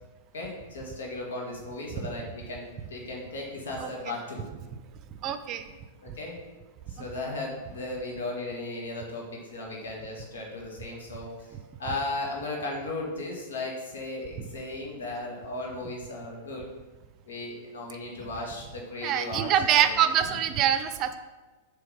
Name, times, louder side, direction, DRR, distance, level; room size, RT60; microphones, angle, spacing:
voice 1, 0.3-2.6 2.9-4.5 5.7-6.4 6.9-16.7 17.3-20.5, left 2 dB, 75° left, -1 dB, 1.9 m, -36 dB
voice 2, 5.2-5.6 19.0-21.2, right 10 dB, 40° right, 9 dB, 0.5 m, -24 dB
7.0 x 3.4 x 5.5 m, 1.2 s
hypercardioid pair, 105°, 0 cm